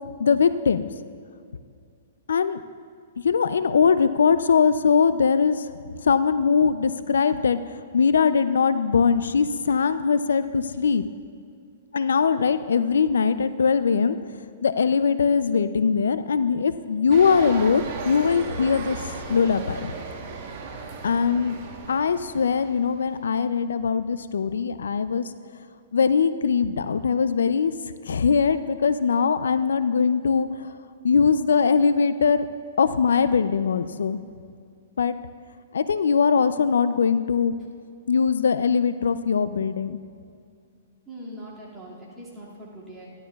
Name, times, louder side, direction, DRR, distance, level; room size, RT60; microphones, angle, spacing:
voice 1, 0.2-0.9 2.3-2.6 3.2-5.7 6.0-11.0 11.9-14.2 14.6-19.0 19.3-19.9 21.0-21.6 21.9-25.3 25.9-27.7 28.1-30.7 31.0-32.5 32.8-34.2 35.0-35.2 35.7-37.5 38.1-40.0, left 6 dB, 90° left, 13 dB, 0.3 m, -21 dB
sound 1, 17.1-23.4, right 4 dB, 45° right, 1.1 m, -36 dB
voice 2, 41.1-43.1, right 1 dB, 10° right, -6 dB, 2.1 m, -41 dB
12.0 x 11.5 x 2.3 m, 2.3 s
hypercardioid pair, 145°, 0 cm